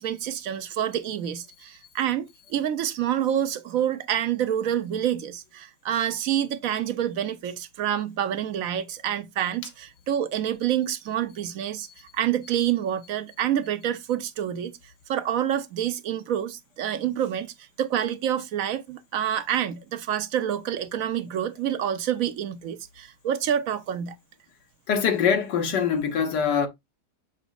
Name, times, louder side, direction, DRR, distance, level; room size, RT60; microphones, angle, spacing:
voice 1, 0.0-14.7 15.1-24.1, right 10 dB, 60° right, 1.0 m, -27 dB
voice 2, 24.9-26.7, left 7 dB, 75° left, 1.6 m, -23 dB
7.0 x 6.1 x 2.3 m
omnidirectional pair, 1.9 m